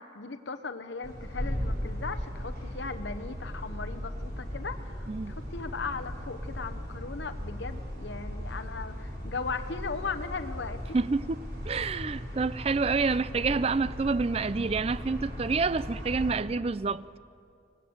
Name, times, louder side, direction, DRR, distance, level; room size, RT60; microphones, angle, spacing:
voice 1, 0.0-10.8, left 4 dB, 70° left, 0.9 m, -38 dB
sound 1, 1.0-16.3, equal, 55° right, 5.2 m, -37 dB
voice 2, 10.9-17.1, right 4 dB, 30° right, 0.4 m, -28 dB
18.5 x 18.0 x 7.8 m
head